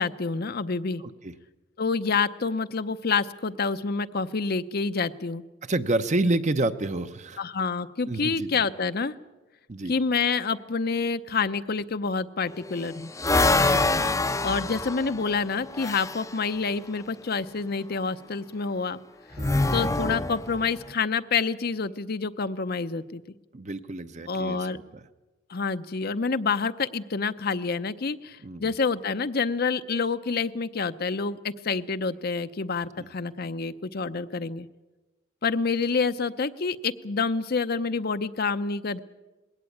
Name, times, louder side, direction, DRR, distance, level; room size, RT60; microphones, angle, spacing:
voice 1, 0.0-1.0 1.8-5.4 7.4-9.1 9.9-13.1 14.4-19.0 19.7-23.2 24.3-24.8 25.5-34.7 35.4-39.0, left 4 dB, 50° left, 11 dB, 0.7 m, -28 dB
voice 2, 1.0-1.3 5.6-7.4 8.1-8.6 9.7-10.0 13.5-13.9 19.4-19.8 23.5-25.1 28.4-28.7 33.0-33.1, right 2 dB, 35° right, 10 dB, 0.8 m, -29 dB
sound 1, 12.4-16.3 19.3-20.8, left 2 dB, 15° left, 0.6 m, -25 dB
21.0 x 17.5 x 8.5 m, 1.1 s
head